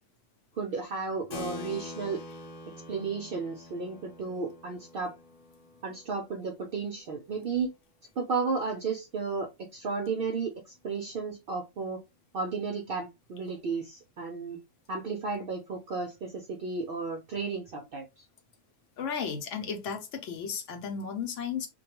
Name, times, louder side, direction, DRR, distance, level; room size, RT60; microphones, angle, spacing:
voice 1, 0.6-2.2 2.9-5.1 5.8-7.7 8.2-10.5 10.8-12.0 12.3-14.6 14.9-18.2, right 4 dB, 65° right, 0.5 m, -33 dB
Keyboard (musical), 1.3-7.3, left 3 dB, 90° left, 1.2 m, -45 dB
voice 2, 19.0-21.7, left 6 dB, 70° left, 0.9 m, -34 dB
2.3 x 2.2 x 2.8 m
omnidirectional pair, 1.4 m